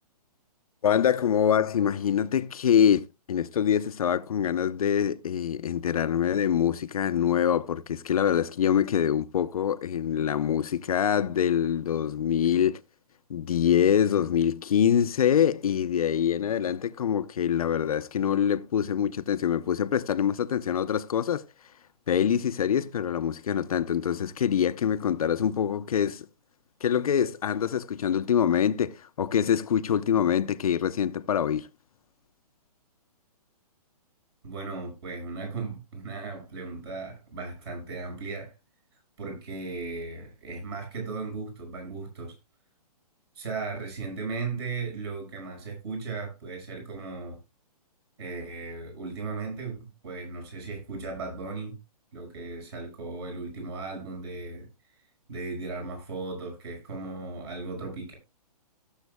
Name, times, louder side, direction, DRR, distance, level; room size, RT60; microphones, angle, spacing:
voice 1, 0.8-12.8 13.3-21.5 22.1-26.3 26.8-31.7, left 9 dB, 65° left, 0.7 m, -25 dB
voice 2, 34.4-38.5 39.2-42.3 43.3-47.4 48.2-51.8 52.1-54.7 55.3-58.1, right 4 dB, 40° right, 5.5 m, -36 dB
17.5 x 7.3 x 2.2 m
hypercardioid pair, 165°, 20 cm